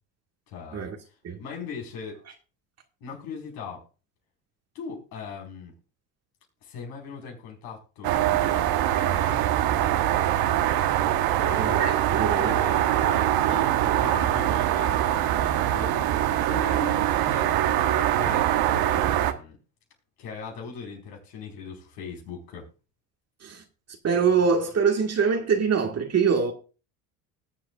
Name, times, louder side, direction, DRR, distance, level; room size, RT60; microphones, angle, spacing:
voice 1, 0.5-0.9 1.4-2.2 3.0-3.8 4.7-5.7 6.6-9.5 11.3-11.8 12.3-16.0 16.5-17.6 18.1-19.6 20.2-22.6, left 5 dB, 70° left, 5.0 m, -39 dB
sound 1, 8.0-19.3, right 12 dB, 60° right, 1.3 m, -23 dB
voice 2, 11.6-12.6 23.4-23.6 24.0-26.5, right 6 dB, 35° right, 1.8 m, -24 dB
20.0 x 7.6 x 2.4 m
hypercardioid pair, 80°, 41 cm